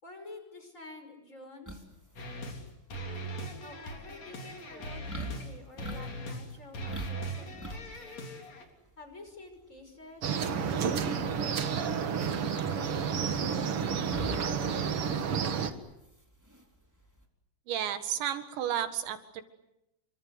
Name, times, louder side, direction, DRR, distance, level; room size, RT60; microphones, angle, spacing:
voice 1, 0.0-1.9 3.6-8.3 9.0-13.7 14.1-15.9, left 1 dB, 15° left, 6 dB, 5.9 m, -50 dB
sound 1, 1.6-17.2, equal, 5° right, 2.7 m, -46 dB
sound 2, 2.2-2.6 2.9-5.5 5.8-6.5 6.7-8.6, right 1 dB, 40° left, 4.4 m, -40 dB
sound 3, 10.2-15.7, right 6 dB, 65° right, 1.4 m, -30 dB
voice 2, 17.7-19.4, right 10 dB, 80° right, 9 dB, 4.0 m, -32 dB
29.0 x 24.5 x 8.1 m, 0.88 s
omnidirectional pair, 5.1 m